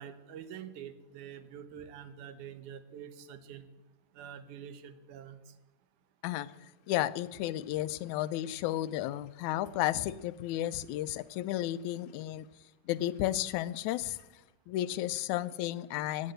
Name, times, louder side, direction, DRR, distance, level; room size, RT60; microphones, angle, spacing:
voice 1, 0.0-3.7 4.1-5.5, right 8 dB, 85° right, 2.6 m, -46 dB
voice 2, 6.9-12.5 12.9-14.2 14.7-16.3, left 14 dB, 80° left, 2.0 m, -33 dB
16.0 x 9.7 x 7.8 m
omnidirectional pair, 3.4 m